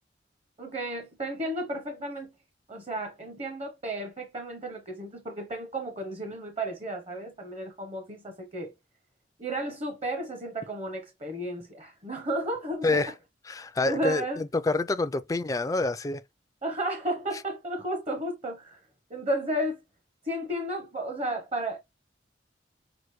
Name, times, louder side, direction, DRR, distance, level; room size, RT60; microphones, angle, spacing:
voice 1, 0.6-2.3 2.7-8.7 9.4-13.0 13.8-14.4 16.6-18.8 19.1-19.8 20.2-21.8, right 1 dB, 35° right, 0.8 m, -33 dB
voice 2, 13.5-16.2, left 3 dB, 20° left, 0.3 m, -27 dB
6.1 x 2.5 x 3.0 m
head